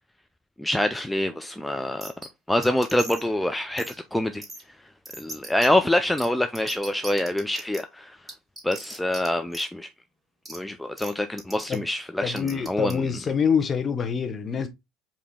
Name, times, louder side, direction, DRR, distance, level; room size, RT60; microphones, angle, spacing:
voice 1, 0.6-2.1 2.5-4.4 5.2-8.2 8.6-9.9 10.5-13.0, left 1 dB, 5° left, 0.4 m, -25 dB
sound 1, 2.0-2.3 2.6-3.3 3.8-4.0 4.4-4.6 5.1-5.7 6.2-6.3 6.5-7.8 8.3-9.3 9.5-9.6 10.5-10.6 11.0-11.1 11.4-11.8 12.4-12.9, right 1 dB, 15° right, 2.5 m, -38 dB
voice 2, 12.2-14.7, left 6 dB, 30° left, 0.9 m, -25 dB
5.0 x 2.7 x 3.3 m
figure-of-eight pair, 65°, 0 cm